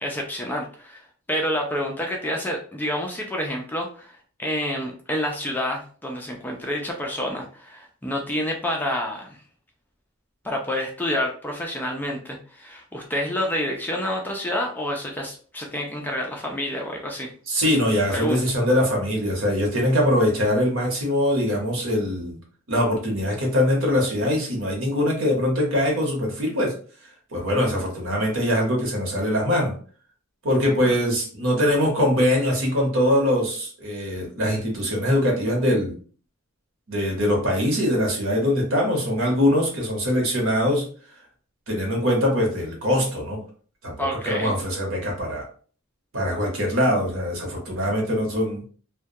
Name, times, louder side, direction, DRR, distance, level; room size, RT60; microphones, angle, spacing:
voice 1, 0.0-9.4 10.4-17.3 18.1-18.4 44.0-44.6, left 1 dB, 10° left, 1 dB, 0.3 m, -28 dB
voice 2, 17.5-22.4 22.7-26.7 27.3-29.7 30.4-36.0 36.9-40.8 41.7-43.4 43.8-45.5 46.1-48.6, left 1 dB, 65° right, 0 dB, 1.0 m, -22 dB
2.2 x 2.2 x 2.6 m, 0.43 s
head